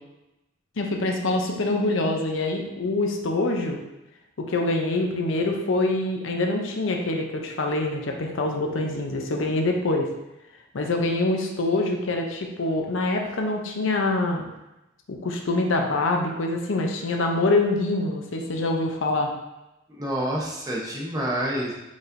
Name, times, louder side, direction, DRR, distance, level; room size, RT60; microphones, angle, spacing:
voice 1, 0.8-3.8 4.4-10.1 10.7-14.5 15.1-19.3, left 2 dB, 80° left, 2 dB, 0.6 m, -25 dB
voice 2, 20.0-21.7, right 1 dB, 20° right, -3 dB, 0.8 m, -28 dB
4.7 x 4.1 x 2.6 m, 0.95 s
head